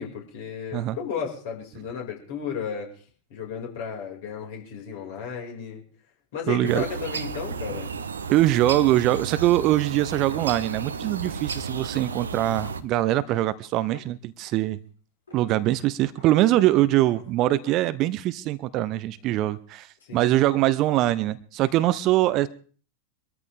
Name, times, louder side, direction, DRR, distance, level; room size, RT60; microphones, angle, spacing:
voice 1, 0.0-3.0 3.3-5.8 6.3-7.9 20.0-20.3, left 7 dB, 55° left, 0 dB, 5.4 m, -34 dB
voice 2, 6.5-6.8 8.3-14.8 15.3-22.5, right 15 dB, 40° right, 15 dB, 0.8 m, -23 dB
sound 1, 6.6-12.8, right 5 dB, 70° right, 1.0 m, -33 dB
sound 2, 9.1-12.8 13.1-13.2 13.5-14.9 15.3-15.4 15.7-18.3 18.7-20.1, left 4 dB, 75° left, 4.8 m, -54 dB
24.0 x 13.5 x 3.5 m, 0.42 s
figure-of-eight pair, 90°, 0 cm